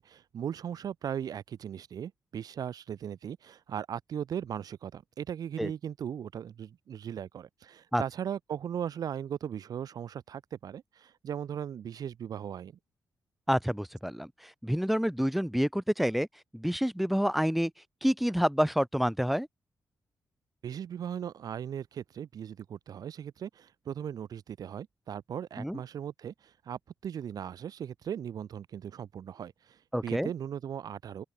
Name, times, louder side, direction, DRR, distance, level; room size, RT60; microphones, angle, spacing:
voice 1, 0.0-12.7 20.6-31.2, right 9 dB, 75° right, 3.2 m, -38 dB
voice 2, 13.5-16.3 16.5-17.7 18.0-19.5 25.6-25.8 29.9-30.3, equal, ahead, 1.1 m, -28 dB
open air
cardioid pair, 110°, 6 cm